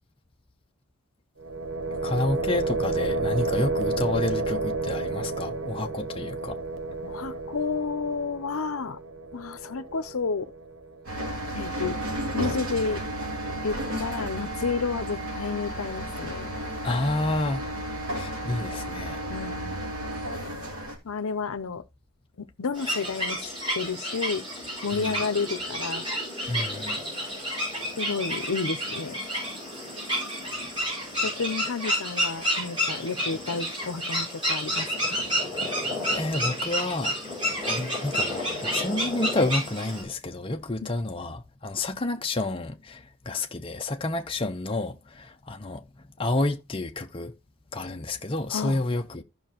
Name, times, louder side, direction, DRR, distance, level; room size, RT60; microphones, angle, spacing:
sound 1, 1.4-11.3, right 3 dB, 60° right, 0.8 m, -31 dB
voice 1, 1.9-6.6 16.8-17.6 18.1-19.2 24.9-25.1 26.5-27.0 36.1-37.2 37.6-45.9 46.2-47.3 47.7-49.2, left 2 dB, 25° left, 0.6 m, -29 dB
voice 2, 7.0-9.0 9.3-10.5 11.5-12.0 12.3-13.0 13.6-16.5 19.3-19.8 21.0-21.8 22.4-24.4 24.8-26.1 28.0-29.2 31.2-35.2 40.8-40.9 48.5-48.8, left 4 dB, 70° left, 0.7 m, -31 dB
sound 2, 11.0-21.0, right 1 dB, 75° right, 2.9 m, -33 dB
sound 3, 22.7-40.0, equal, 20° right, 6.4 m, -30 dB
14.5 x 5.7 x 2.9 m
head